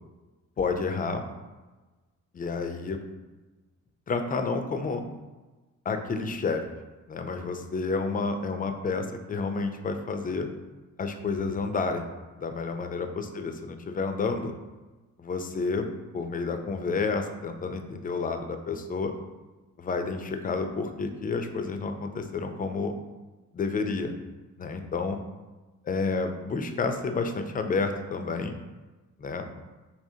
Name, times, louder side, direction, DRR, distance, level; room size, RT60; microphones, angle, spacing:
voice 1, 0.6-1.2 2.3-3.0 4.1-5.0 5.9-6.6 7.1-10.5 11.0-12.0 12.4-14.5 15.2-15.9 16.1-19.1 19.8-22.9 23.5-24.1 24.6-25.2 25.8-28.5 29.2-29.5, left 4 dB, 30° left, 6 dB, 0.5 m, -30 dB
4.9 x 2.9 x 2.7 m, 1.2 s
cardioid pair, 90°, 30 cm